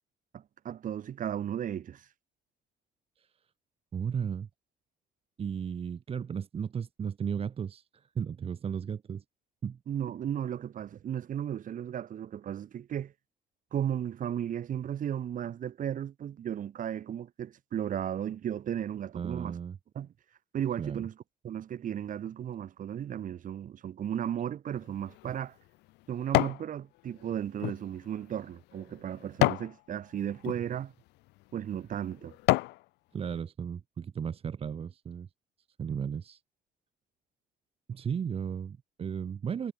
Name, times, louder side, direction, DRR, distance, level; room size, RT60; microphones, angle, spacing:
voice 1, 0.3-2.1 9.9-13.1 13.7-19.6 19.9-20.1 20.5-21.2 21.4-25.6 26.1-30.9 31.5-32.3, right 10 dB, 50° right, 2.5 m, -35 dB
voice 2, 3.9-4.5 5.4-9.2 9.6-9.8 19.1-19.8 20.8-21.1 33.1-35.3 35.8-36.4 37.9-39.7, right 7 dB, 35° right, 0.9 m, -35 dB
sound 1, 24.8-26.7 27.1-29.7 30.3-30.6 31.3-31.4 31.9-32.8 33.3-33.4, left 20 dB, 85° left, 0.6 m, -30 dB
cardioid pair, 110°, 17 cm